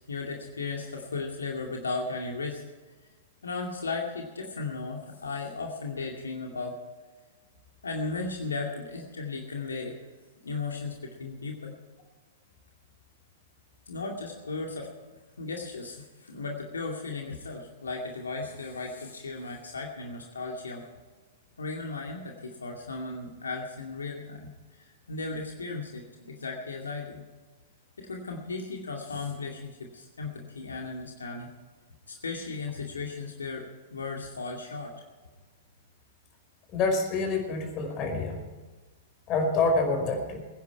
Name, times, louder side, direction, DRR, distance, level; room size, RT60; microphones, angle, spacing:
voice 1, 0.0-2.6 3.4-6.8 7.8-9.9 10.4-11.7 13.9-14.9 15.4-20.8 21.6-24.5 24.8-27.2 28.0-31.5 32.1-34.9, left 3 dB, 80° left, 1 dB, 2.3 m, -36 dB
voice 2, 36.7-38.4 39.3-40.4, left 3 dB, 35° left, 3 dB, 5.3 m, -27 dB
23.0 x 10.5 x 4.8 m, 1.3 s
figure-of-eight pair, 110°, 0 cm